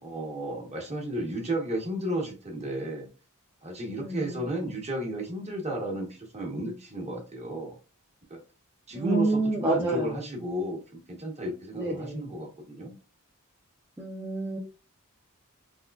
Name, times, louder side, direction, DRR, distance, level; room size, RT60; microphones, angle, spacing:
voice 1, 0.0-3.1 3.6-7.7 8.3-8.4 8.9-13.0, right 1 dB, 30° right, 1 dB, 1.1 m, -33 dB
voice 2, 4.0-4.4 8.9-10.1 11.8-12.2 14.0-14.6, right 2 dB, 10° right, -4 dB, 0.6 m, -28 dB
3.6 x 2.9 x 2.3 m, 0.32 s
head